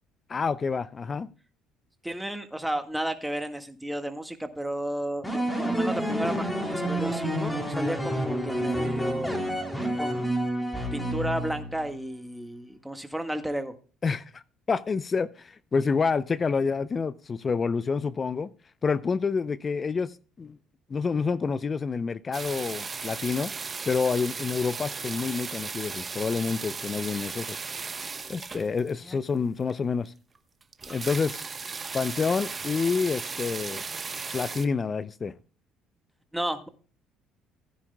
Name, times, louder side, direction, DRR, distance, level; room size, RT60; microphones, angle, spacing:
voice 1, 0.3-1.3 14.0-14.4 14.7-18.5 18.8-20.6 20.9-23.5 23.9-27.6 28.3-30.1 30.9-31.4 31.9-33.8 34.3-35.3, left 5 dB, 35° left, 0.5 m, -28 dB
voice 2, 2.0-9.3 10.0-10.3 10.9-13.8 29.0-29.2 36.3-36.7, right 1 dB, 5° right, 1.6 m, -33 dB
sound 1, 5.2-11.9, equal, 15° left, 3.7 m, -29 dB
sound 2, 22.3-29.1 29.7-29.8 30.1-30.2 30.4-30.5 30.6-34.7, right 4 dB, 30° right, 1.1 m, -36 dB
15.5 x 9.8 x 2.2 m
supercardioid pair, 70°, 0 cm